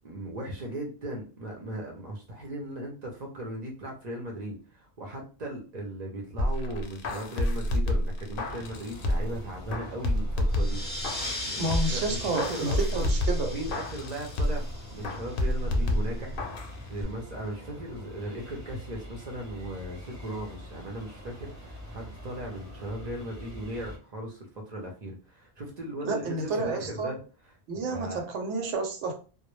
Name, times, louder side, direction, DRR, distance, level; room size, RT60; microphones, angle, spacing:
voice 1, 0.0-10.8 11.4-13.1 13.5-14.6 14.9-27.2 27.9-28.2, right 1 dB, 50° right, 0 dB, 0.5 m, -38 dB
sound 1, 6.4-9.4 9.7-11.4 11.7-14.7 15.0-16.7 17.0-17.1, left 1 dB, 60° left, 0.6 m, -28 dB
sound 2, 8.4-24.0, left 1 dB, 20° right, 0.7 m, -44 dB
sound 3, 10.5-15.7, left 1 dB, 15° left, 0.4 m, -39 dB
voice 2, 11.6-13.5 26.0-27.1 27.7-29.1, right 3 dB, 80° right, 4 dB, 0.9 m, -30 dB
2.1 x 2.0 x 3.0 m, 0.36 s
omnidirectional pair, 1.2 m